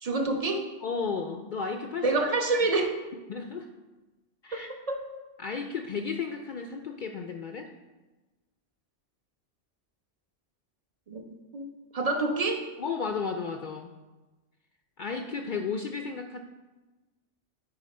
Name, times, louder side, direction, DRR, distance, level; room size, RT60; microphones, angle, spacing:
voice 1, 0.0-0.7 2.0-3.0 4.5-5.0 11.1-11.2 11.5-12.7, right 3 dB, 35° right, 4 dB, 0.8 m, -28 dB
voice 2, 0.8-2.1 3.3-3.7 4.4-4.7 5.4-7.7 12.8-13.9 15.0-16.4, left 5 dB, 60° left, 4 dB, 0.5 m, -33 dB
8.6 x 4.8 x 4.2 m, 1.2 s
omnidirectional pair, 1.2 m